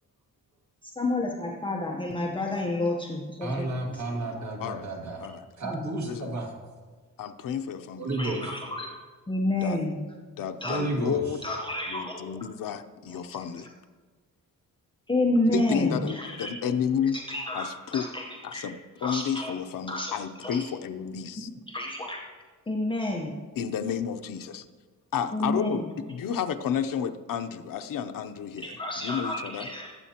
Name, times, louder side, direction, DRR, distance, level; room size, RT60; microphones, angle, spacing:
voice 1, 0.8-3.7 5.6-5.8 8.2-8.9 9.3-10.0 10.6-10.8 11.4-12.4 13.1-13.2 15.1-16.5 17.1-18.3 18.5-18.6 19.0-19.5 19.9-20.1 20.4-20.7 21.7-22.2 22.7-23.3 25.3-25.9 28.6-29.9, left 1 dB, 15° left, -2 dB, 0.9 m, -30 dB
voice 2, 3.4-5.3 5.6-6.6 8.0-8.6 10.6-11.4, right 2 dB, 60° right, 0 dB, 2.1 m, -32 dB
voice 3, 7.2-8.0 8.3-8.4 9.6-9.9 10.4-11.4 11.9-13.7 15.5-17.2 17.5-18.1 18.4-21.5 23.6-24.7 25.1-25.8 26.1-29.7, left 8 dB, 80° left, 8 dB, 0.7 m, -31 dB
19.5 x 8.4 x 2.9 m, 1.4 s
wide cardioid pair, 165°, 33 cm